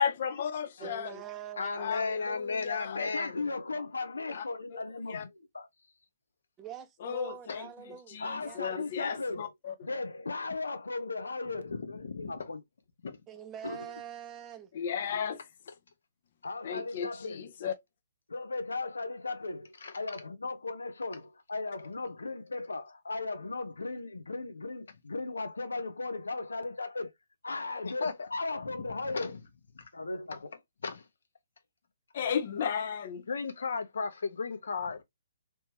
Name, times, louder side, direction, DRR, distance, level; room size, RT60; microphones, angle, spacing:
voice 1, 0.0-1.2 1.7-3.0 4.3-4.4 4.7-5.2 7.0-7.7 8.1-9.7 14.7-15.4 16.6-17.7 32.1-33.2, left 7 dB, 50° left, 0.6 m, -34 dB
voice 2, 0.8-1.9 6.6-8.8 13.3-14.7, right 9 dB, 20° right, 0.7 m, -44 dB
voice 3, 1.6-3.5 4.3-4.4 7.5-7.6 11.6-12.5 13.0-13.2 15.1-15.2 19.8-19.9 27.8-28.3 28.9-29.4 30.3-30.4 30.8-31.0 33.3-35.0, left 4 dB, 70° left, 1.0 m, -35 dB
voice 4, 2.9-5.2 5.5-5.7 8.2-9.5 9.8-12.6 13.6-13.9 16.4-17.5 18.3-27.1 27.4-29.3 29.9-30.5, left 3 dB, 90° left, 0.7 m, -37 dB
3.3 x 3.1 x 2.9 m
hypercardioid pair, 145°, 0 cm